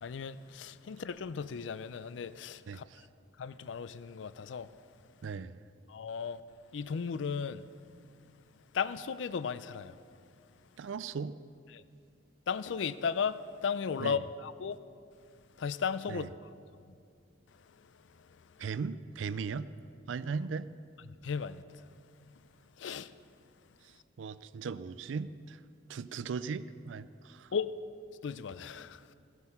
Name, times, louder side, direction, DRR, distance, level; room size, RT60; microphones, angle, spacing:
voice 1, 0.0-2.8 3.4-4.7 5.9-6.4 6.7-7.6 8.7-10.0 11.7-11.8 12.5-14.8 15.6-16.3 17.8-17.9 18.2-18.3 21.2-21.9 22.8-23.1 27.5-27.7 28.2-29.1, left 6 dB, 75° left, 0.4 m, -35 dB
voice 2, 2.7-3.0 5.2-5.6 10.8-11.3 14.0-14.2 16.1-16.3 18.6-19.7 20.1-20.7 23.8-25.6 25.9-27.5, right 5 dB, 85° right, 0.4 m, -38 dB
16.5 x 8.1 x 5.7 m
head